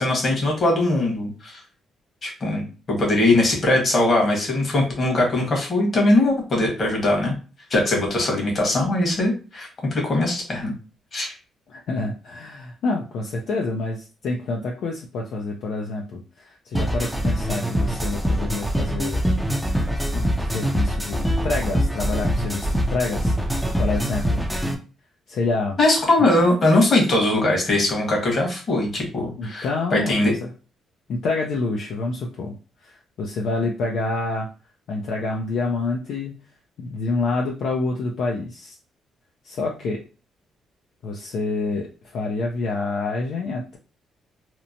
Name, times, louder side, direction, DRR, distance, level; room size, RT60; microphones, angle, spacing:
voice 1, 0.0-1.6 2.2-7.4 7.7-10.7 11.1-11.3 25.8-30.3, left 2 dB, 45° left, 0 dB, 1.2 m, -21 dB
voice 2, 11.7-19.2 20.1-24.4 25.3-25.8 29.4-30.3 31.1-32.5 32.8-34.5 34.9-36.4 36.8-38.7 39.4-40.0 41.0-41.9 42.1-43.8, left 3 dB, 70° left, 0 dB, 0.4 m, -27 dB
sound 1, 16.7-24.7, equal, 5° right, 0.5 m, -24 dB
2.9 x 2.1 x 2.5 m, 0.34 s
cardioid pair, 90°, 0 cm